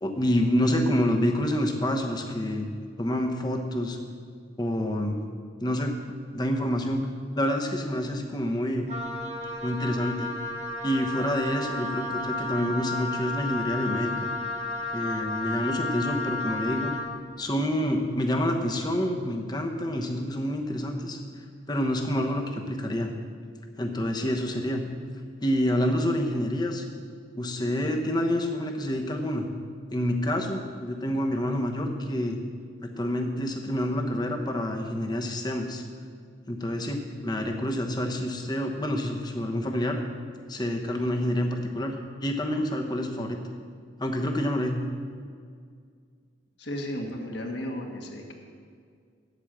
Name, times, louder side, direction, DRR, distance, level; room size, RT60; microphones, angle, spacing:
voice 1, 0.0-2.7 3.0-4.0 4.6-5.2 5.6-5.9 6.3-7.1 7.4-8.9 9.6-10.3 10.8-14.3 14.9-16.9 17.4-21.2 21.7-23.1 23.8-24.8 25.4-26.8 27.3-29.5 29.9-32.4 32.8-35.8 36.5-40.0 40.5-43.4 44.0-44.8, left 1 dB, 20° left, 3 dB, 1.0 m, -27 dB
Wind instrument woodwind instrument, 8.9-17.2, left 2 dB, 35° right, 1.0 m, -32 dB
voice 2, 46.6-48.3, equal, 60° left, 1 dB, 1.6 m, -34 dB
9.1 x 8.3 x 7.3 m, 2.1 s
head